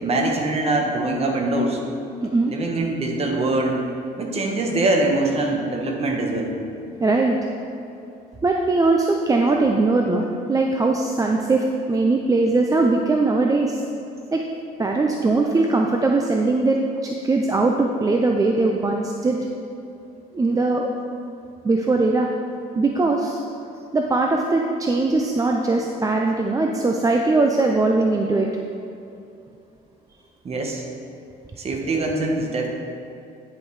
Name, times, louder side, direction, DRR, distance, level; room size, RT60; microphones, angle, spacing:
voice 1, 0.0-1.8 2.5-3.8 4.2-6.6 30.4-30.8 31.6-32.7, right 2 dB, 35° right, 1 dB, 1.3 m, -23 dB
voice 2, 2.2-2.5 7.0-7.4 8.4-13.8 14.3-14.4 14.8-19.4 20.3-20.9 21.6-22.3 22.7-23.4 23.9-28.5, right 3 dB, 20° right, 1 dB, 0.5 m, -20 dB
9.8 x 5.3 x 4.8 m, 2.7 s
cardioid pair, 110°, 17 cm